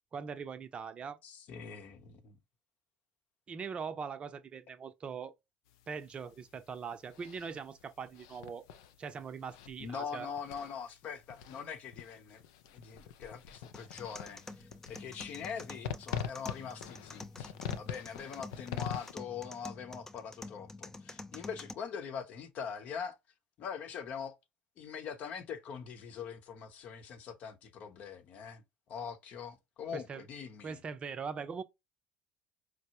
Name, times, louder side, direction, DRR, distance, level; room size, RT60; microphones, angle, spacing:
voice 1, 0.1-1.2 3.5-5.3 5.9-8.6 9.0-10.3 29.9-30.2 30.6-31.6, right 6 dB, 35° right, 0.6 m, -41 dB
voice 2, 1.2-2.4 9.8-12.4 12.7-23.2 23.6-24.4 24.8-28.6 28.9-30.8, left 7 dB, 50° left, 0.8 m, -43 dB
sound 1, 5.7-19.1, left 9 dB, 70° left, 0.4 m, -45 dB
sound 2, 13.7-21.7, left 2 dB, 15° left, 0.5 m, -48 dB
4.5 x 2.1 x 2.9 m
hypercardioid pair, 65°, 3 cm